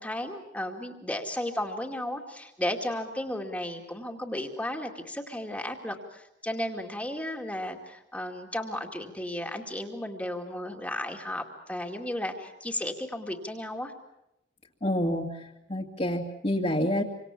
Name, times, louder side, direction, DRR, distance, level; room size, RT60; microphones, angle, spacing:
voice 1, 0.0-13.9, left 1 dB, 5° left, 2 dB, 2.3 m, -34 dB
voice 2, 14.8-17.0, left 1 dB, 35° left, -2 dB, 2.1 m, -28 dB
28.0 x 25.5 x 7.2 m, 0.86 s
head